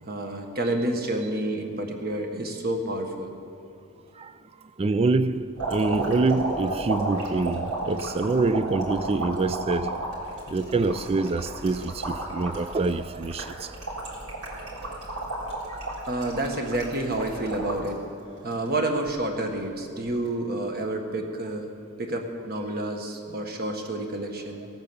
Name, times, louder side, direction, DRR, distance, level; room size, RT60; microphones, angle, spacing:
voice 1, 0.0-3.3 16.1-18.0 18.4-21.7 22.0-24.7, right 1 dB, 45° right, 1.5 m, -29 dB
voice 2, 4.8-10.0 10.5-13.7, right 3 dB, 25° right, 0.3 m, -25 dB
sound 1, 5.6-17.9 18.4-19.1 20.1-20.3, right 2 dB, 80° right, 3.9 m, -33 dB
18.0 x 8.9 x 7.0 m
head